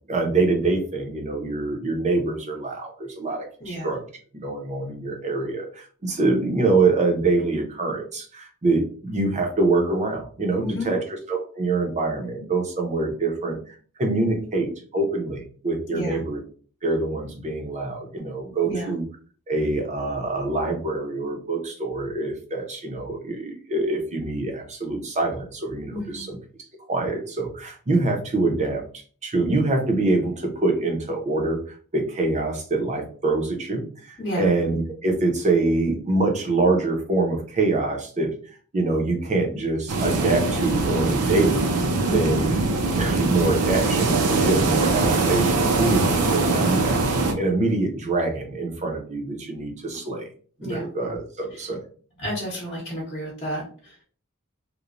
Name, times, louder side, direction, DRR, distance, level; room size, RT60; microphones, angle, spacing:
voice 1, 0.1-4.0 4.4-16.4 16.8-19.0 19.5-26.4 26.9-28.8 29.2-38.4 38.7-41.7 42.1-42.5 42.9-47.0 47.4-50.3 50.6-51.8, right 3 dB, 30° right, 2 dB, 0.6 m, -25 dB
voice 2, 3.6-3.9 10.6-10.9 15.9-16.2 18.6-18.9 25.9-26.3 34.2-34.5 41.9-42.2 46.6-46.9 50.6-50.9 51.5-51.7 52.2-54.0, equal, 30° left, -4 dB, 0.8 m, -31 dB
sound 1, 39.9-47.3, right 3 dB, 75° right, 0.5 m, -22 dB
3.0 x 2.1 x 2.5 m, 0.43 s
head